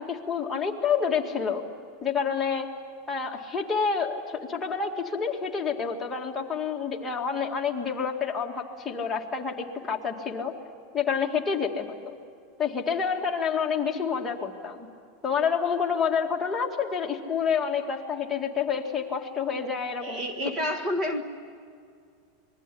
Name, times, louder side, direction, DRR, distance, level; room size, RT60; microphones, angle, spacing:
voice 1, 0.0-1.6 2.0-2.7 3.1-4.2 4.5-10.5 10.9-12.2 12.6-14.9 15.2-20.2, left 6 dB, 15° left, 0 dB, 2.1 m, -28 dB
voice 2, 20.0-21.3, left 1 dB, 25° right, 8 dB, 1.6 m, -29 dB
27.0 x 21.5 x 10.0 m, 2.2 s
supercardioid pair, 150°, 0 cm